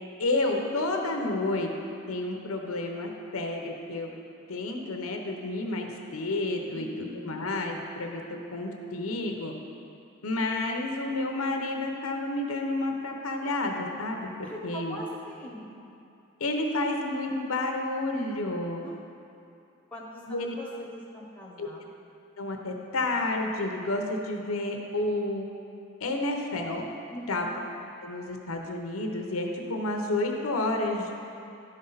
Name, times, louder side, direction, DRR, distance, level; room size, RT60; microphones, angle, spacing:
voice 1, 0.2-1.7 2.1-4.1 4.5-9.5 10.2-15.0 16.4-18.8 20.3-20.5 21.6-21.7 22.4-25.5 26.0-26.9 27.3-27.4 28.0-31.1, left 2 dB, 85° left, 2 dB, 0.9 m, -30 dB
voice 2, 6.7-7.4 14.4-15.8 18.8-19.0 19.9-21.9 27.1-27.5, equal, 5° left, -3 dB, 1.1 m, -42 dB
12.0 x 5.4 x 4.0 m, 2.7 s
head